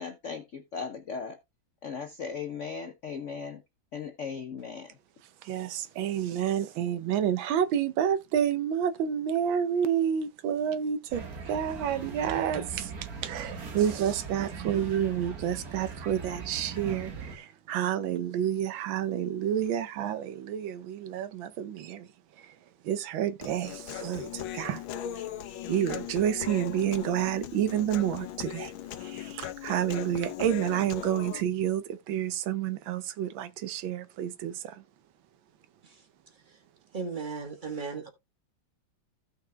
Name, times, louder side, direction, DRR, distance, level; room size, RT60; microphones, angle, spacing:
voice 1, 0.0-1.4 1.8-3.6 3.9-5.0, left 6 dB, 60° left, 0.7 m, -37 dB
voice 2, 5.4-22.1 22.3-22.6 22.8-24.8 25.7-34.8, right 9 dB, 80° right, 1.5 m, -29 dB
sound 1, 11.1-17.4, right 5 dB, 50° right, 1.9 m, -40 dB
Human voice, 23.4-31.4, left 11 dB, 90° left, 1.6 m, -39 dB
voice 3, 36.9-38.1, right 4 dB, 30° right, 1.3 m, -35 dB
15.5 x 5.8 x 2.3 m
omnidirectional pair, 2.1 m